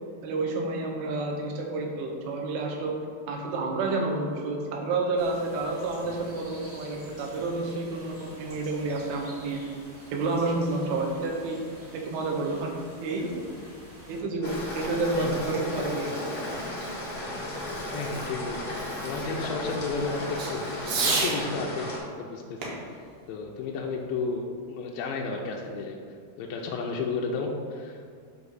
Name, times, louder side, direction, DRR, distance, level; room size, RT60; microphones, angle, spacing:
voice 1, 0.2-3.0 3.3-9.6 10.1-11.6 12.1-12.7 13.0-13.4 14.1-16.2, right 3 dB, 85° right, 0 dB, 2.8 m, -29 dB
sound 1, 5.2-14.2, equal, 45° right, 0.8 m, -48 dB
Fireworks, 14.3-21.4 22.6-24.2, right 4 dB, 70° right, 2.5 m, -36 dB
sound 2, 14.4-22.0, left 1 dB, 60° left, 1.0 m, -35 dB
voice 2, 17.9-21.9 22.2-23.0 23.3-26.0 26.4-28.2, left 4 dB, 80° left, 0 dB, 2.1 m, -33 dB
8.1 x 2.8 x 6.2 m, 2.2 s
omnidirectional pair, 4.4 m